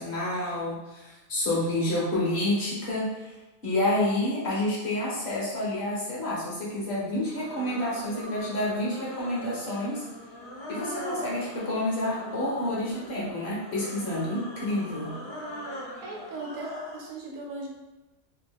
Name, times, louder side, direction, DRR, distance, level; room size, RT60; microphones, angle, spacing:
voice 1, 0.0-3.3 3.6-10.0 10.7-15.1, left 1 dB, 50° left, -6 dB, 1.1 m, -29 dB
sound 1, 7.1-17.1, equal, 35° left, 0.4 m, -41 dB
voice 2, 16.0-17.7, right 2 dB, 75° right, -1 dB, 1.1 m, -38 dB
2.9 x 2.4 x 3.4 m, 1.1 s
omnidirectional pair, 1.5 m